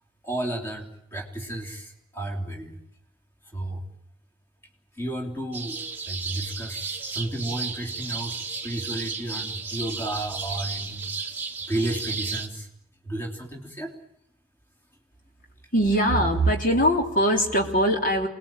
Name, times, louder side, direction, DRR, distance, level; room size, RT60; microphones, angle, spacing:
voice 1, 0.2-2.8 3.5-3.8 4.9-5.8 6.1-11.3 11.7-12.7 13.0-13.9, right 1 dB, 10° left, 2 dB, 3.3 m, -32 dB
sound 1, 5.5-12.5, right 4 dB, 10° right, 1.6 m, -34 dB
voice 2, 15.7-18.3, equal, 40° left, 2 dB, 3.5 m, -21 dB
28.0 x 20.5 x 9.1 m, 0.83 s
head